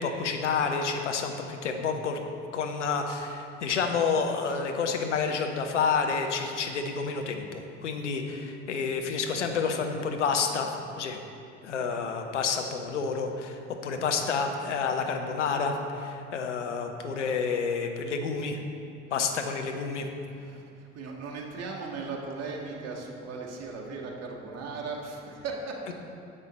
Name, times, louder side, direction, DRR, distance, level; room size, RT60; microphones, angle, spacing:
voice 1, 0.0-2.2 2.5-11.2 11.6-18.6 19.1-20.1 25.9-26.0, left 5 dB, 85° left, 4 dB, 0.8 m, -29 dB
voice 2, 19.2-19.6 20.3-25.9, right 4 dB, 45° right, -1 dB, 1.7 m, -38 dB
9.8 x 7.2 x 4.1 m, 2.5 s
figure-of-eight pair, 60°, 35 cm